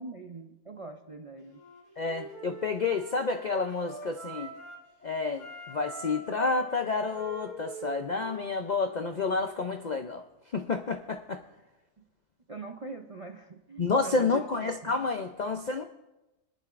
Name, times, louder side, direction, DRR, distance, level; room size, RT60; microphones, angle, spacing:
voice 1, 0.0-1.6 12.0-12.1 12.5-14.9, right 3 dB, 50° right, 3 dB, 0.4 m, -43 dB
Wind instrument woodwind instrument, 1.5-4.9 5.3-9.0, right 2 dB, 80° left, 3.6 m, -44 dB
voice 2, 2.0-4.5 5.0-10.2 10.5-11.4 13.8-15.8, left 4 dB, 60° left, 5 dB, 0.4 m, -30 dB
23.0 x 10.5 x 2.5 m, 1.0 s
omnidirectional pair, 1.5 m